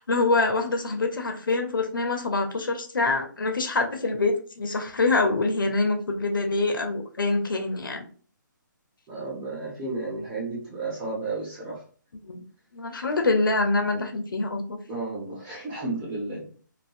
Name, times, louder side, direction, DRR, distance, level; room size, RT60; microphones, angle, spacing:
voice 1, 0.0-8.1 12.2-12.4 12.7-14.8, left 3 dB, 85° left, 5 dB, 0.6 m, -25 dB
voice 2, 9.1-11.8 14.9-16.6, right 3 dB, 20° right, -5 dB, 1.1 m, -33 dB
2.5 x 2.2 x 2.4 m, 0.42 s
figure-of-eight pair, 145°, 11 cm